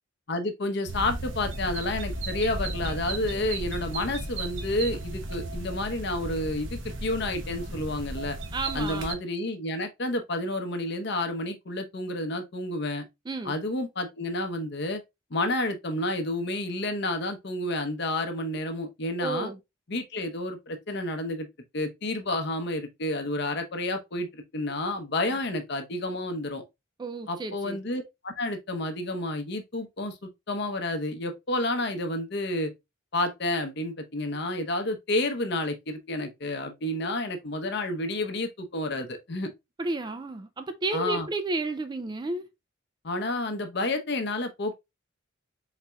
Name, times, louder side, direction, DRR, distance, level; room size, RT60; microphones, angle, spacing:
voice 1, 0.3-8.4 8.7-13.0 13.4-15.0 15.3-19.5 19.9-21.5 21.7-26.6 27.3-32.7 33.1-39.5 40.9-41.3 43.0-44.8, left 2 dB, 55° left, 0.8 m, -30 dB
sound 1, 0.9-9.1, right 2 dB, 65° right, 0.9 m, -35 dB
voice 2, 8.5-9.1 13.3-13.5 19.2-19.6 27.0-27.8 39.8-42.5, right 3 dB, 20° right, 0.3 m, -32 dB
4.3 x 4.0 x 2.2 m
head